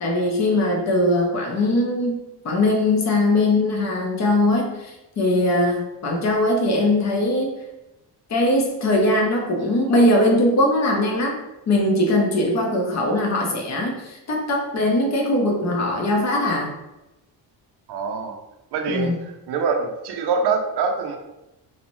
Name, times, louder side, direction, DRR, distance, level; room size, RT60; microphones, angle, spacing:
voice 1, 0.0-7.5 8.3-11.4 11.7-16.7 18.9-19.2, left 1 dB, 40° left, 1 dB, 0.5 m, -21 dB
voice 2, 17.9-18.4 18.7-19.1 19.5-21.2, right 5 dB, 65° right, 3 dB, 0.5 m, -24 dB
2.6 x 2.1 x 2.9 m, 0.97 s
cardioid pair, 155°, 43 cm